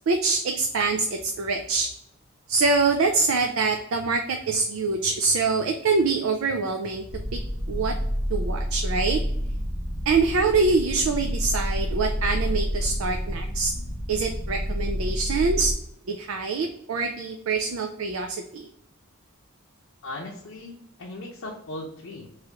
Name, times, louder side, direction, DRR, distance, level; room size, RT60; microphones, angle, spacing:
voice 1, 0.1-1.9 2.5-7.0 7.7-7.9 8.3-9.2 10.1-13.7 14.1-15.7 16.1-18.7, right 4 dB, 90° right, 4 dB, 0.4 m, -24 dB
sound 1, 7.1-15.7, equal, 25° right, 0.8 m, -29 dB
voice 2, 20.0-22.3, left 2 dB, 65° left, -2 dB, 0.7 m, -38 dB
3.6 x 3.1 x 2.9 m, 0.74 s
head